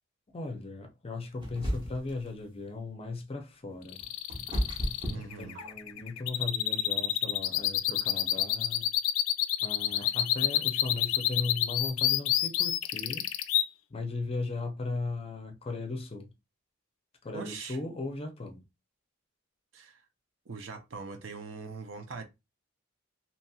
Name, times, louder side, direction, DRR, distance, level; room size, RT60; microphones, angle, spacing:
voice 1, 0.3-4.0 5.4-8.9 9.6-13.3 13.9-16.3 17.2-18.6, left 3 dB, 30° left, 0.5 m, -37 dB
sound 1, 1.4-2.2 3.7-6.0, equal, 25° right, 0.9 m, -33 dB
sound 2, 3.9-13.6, left 13 dB, 90° left, 0.3 m, -28 dB
voice 2, 5.1-5.6 9.8-10.2 17.3-17.8 19.7-20.0 20.5-22.2, right 4 dB, 70° right, 0.6 m, -42 dB
2.8 x 2.8 x 2.3 m
head